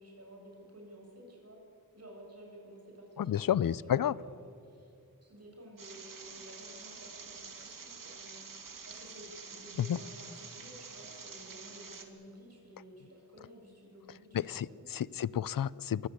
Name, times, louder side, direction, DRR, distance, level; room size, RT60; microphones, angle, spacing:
voice 1, 0.0-1.6 1.9-4.9 5.2-14.9, equal, 45° right, 0 dB, 7.8 m, -53 dB
voice 2, 3.2-4.2 9.8-10.0 14.3-16.1, left 10 dB, 65° left, 20 dB, 0.6 m, -31 dB
sound 1, 5.8-12.1, right 5 dB, 65° right, 2.2 m, -48 dB
23.0 x 15.0 x 9.7 m, 2.7 s
wide cardioid pair, 75°, 35 cm